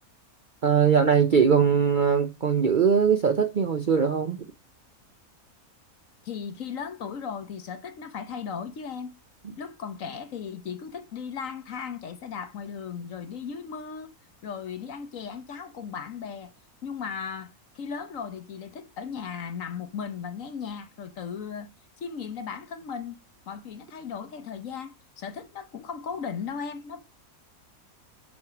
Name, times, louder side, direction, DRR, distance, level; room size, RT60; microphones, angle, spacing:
voice 1, 0.6-4.5, right 6 dB, 50° right, 0.6 m, -21 dB
voice 2, 6.2-9.1 9.6-14.1 14.4-16.5 16.8-21.7 22.0-23.2 23.5-27.0, left 6 dB, 60° left, 1.3 m, -36 dB
6.5 x 6.0 x 5.8 m
omnidirectional pair, 1.6 m